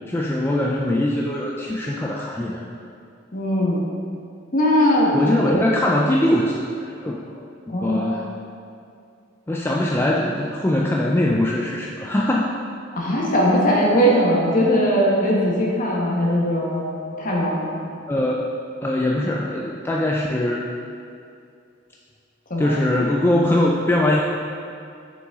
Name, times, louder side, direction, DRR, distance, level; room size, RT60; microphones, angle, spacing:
voice 1, 0.1-2.6 5.1-7.2 7.8-8.3 9.5-12.5 18.1-18.6 18.8-20.7 22.6-24.2, left 1 dB, 10° left, -2 dB, 0.4 m, -22 dB
voice 2, 3.3-3.8 4.5-5.1 5.4-5.5 7.7-8.2 12.9-17.8 22.5-22.8, equal, 45° left, -4 dB, 1.3 m, -20 dB
6.5 x 6.0 x 3.6 m, 2.4 s
head